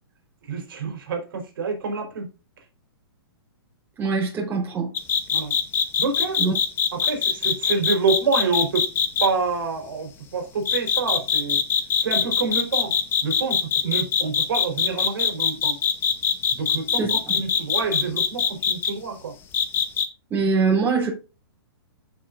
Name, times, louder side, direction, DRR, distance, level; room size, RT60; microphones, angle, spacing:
voice 1, 0.4-2.3 5.3-5.6 6.0-6.5 6.9-8.8 9.2-11.6 12.0-13.0 13.2-15.8 16.5-19.3, right 4 dB, 60° right, 3.8 m, -27 dB
voice 2, 4.0-4.9 6.4-6.5 17.0-17.1 20.3-21.1, right 4 dB, 15° right, 3.9 m, -22 dB
sound 1, 4.9-9.3 10.6-18.9 19.5-20.1, left 7 dB, 15° left, 1.1 m, -22 dB
15.0 x 5.7 x 2.5 m
hypercardioid pair, 160°, 13 cm